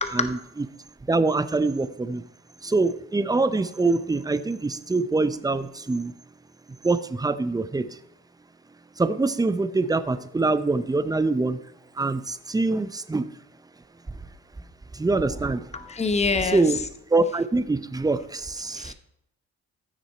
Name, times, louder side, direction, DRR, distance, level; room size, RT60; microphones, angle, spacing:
voice 1, 0.1-0.6 1.1-2.2 2.6-6.1 6.8-8.0 9.0-11.6 12.0-13.3 14.9-15.7 16.4-16.8 17.1-18.9, right 3 dB, 10° right, 12 dB, 0.7 m, -24 dB
voice 2, 15.7-16.6 18.8-18.9, left 4 dB, 20° left, 9 dB, 0.9 m, -25 dB
14.0 x 6.2 x 4.4 m, 0.82 s
cardioid pair, 90°, 30 cm